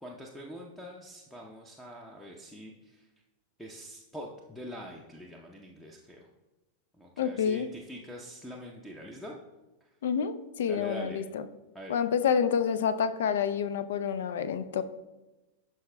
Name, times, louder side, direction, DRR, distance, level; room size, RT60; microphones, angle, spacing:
voice 1, 0.0-3.1 3.6-6.3 6.9-9.4 9.8-9.9 10.7-11.2 11.7-12.0, equal, 5° left, 0 dB, 0.7 m, -44 dB
voice 2, 7.2-7.7 10.0-11.4 11.9-14.8, left 7 dB, 60° left, 13 dB, 0.4 m, -28 dB
12.0 x 4.8 x 2.2 m, 1.1 s
figure-of-eight pair, 90°, 0 cm